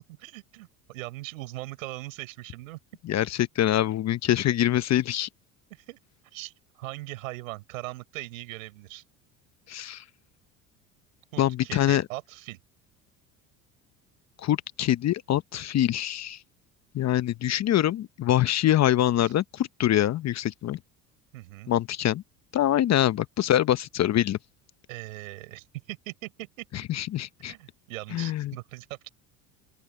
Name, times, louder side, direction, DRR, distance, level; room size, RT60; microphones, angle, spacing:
voice 1, 0.1-2.8 5.7-6.0 6.3-9.0 11.3-12.6 19.2-19.3 21.3-21.7 24.9-26.7 27.4-29.1, right 19 dB, 85° right, 7.0 m, -40 dB
voice 2, 3.1-5.3 9.7-10.0 11.4-12.0 14.4-16.4 16.9-20.8 21.7-22.2 22.5-24.4 26.7-27.5 28.1-28.5, left 12 dB, 45° left, 0.9 m, -24 dB
open air
hypercardioid pair, 80°, 39 cm